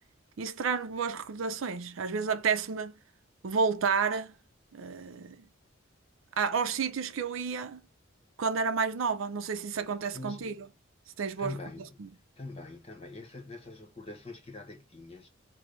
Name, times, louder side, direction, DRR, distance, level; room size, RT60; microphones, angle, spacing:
voice 1, 0.4-2.9 3.4-4.3 4.7-5.4 6.4-7.8 8.4-10.5 11.2-11.6 12.0-12.1, right 5 dB, 70° right, 0.5 m, -30 dB
voice 2, 9.7-10.6 11.4-12.0 12.4-15.3, left 2 dB, 30° left, 0.9 m, -44 dB
3.2 x 2.0 x 3.8 m
head